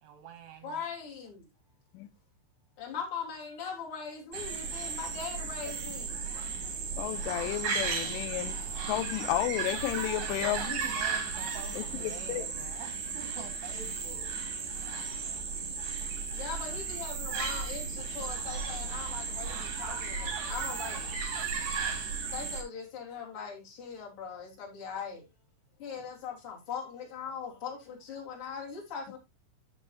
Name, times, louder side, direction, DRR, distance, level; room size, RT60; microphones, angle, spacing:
voice 1, 0.0-0.7 10.4-14.3, right 7 dB, 70° right, 2.8 m, -46 dB
voice 2, 0.6-1.5 2.8-6.5 6.8-6.9 16.3-21.2 22.1-25.3 25.8-29.2, left 6 dB, 30° left, 3.3 m, -40 dB
sound 1, 4.3-22.6, right 5 dB, 50° right, 2.5 m, -35 dB
voice 3, 7.0-8.6 8.9-10.8 11.8-12.5, left 16 dB, 80° left, 3.1 m, -32 dB
13.5 x 6.3 x 2.5 m
omnidirectional pair, 5.7 m